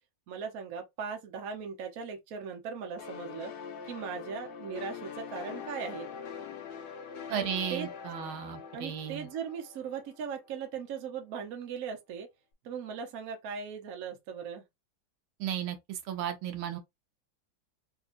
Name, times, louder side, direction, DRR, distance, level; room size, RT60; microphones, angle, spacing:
voice 1, 0.3-3.5 3.9-6.1 7.3-7.9 8.7-12.3 12.6-14.6, right 6 dB, 55° right, 1.0 m, -39 dB
sound 1, 3.0-10.5, left 6 dB, 70° left, 1.1 m, -43 dB
voice 2, 7.3-9.3 15.4-16.8, right 9 dB, 75° right, 1.5 m, -35 dB
3.7 x 2.8 x 2.5 m
omnidirectional pair, 2.3 m